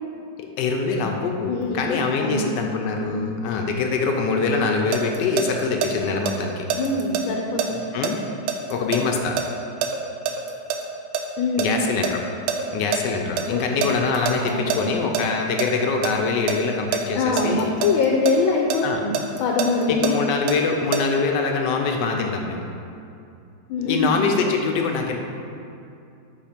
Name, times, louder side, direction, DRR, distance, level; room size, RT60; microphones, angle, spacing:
voice 1, 0.6-6.7 7.9-8.2 8.5-9.4 11.6-12.2 12.7-17.7 18.8-19.0 19.9-22.6 23.9-25.2, left 4 dB, 70° left, 2 dB, 1.2 m, -24 dB
voice 2, 1.5-2.5 3.0-3.2 6.7-7.8 11.4-11.8 13.5-13.9 14.4-14.9 17.1-20.2 23.7-24.2, left 3 dB, 90° left, 0 dB, 1.4 m, -24 dB
sound 1, 4.5-5.9 6.3-10.8 11.1-13.0 13.4-13.5 13.8-15.2 15.6-16.1 16.5-18.3 18.7-21.0, right 7 dB, 90° right, 1.4 m, -25 dB
5.4 x 5.0 x 5.1 m, 2.6 s
omnidirectional pair, 2.1 m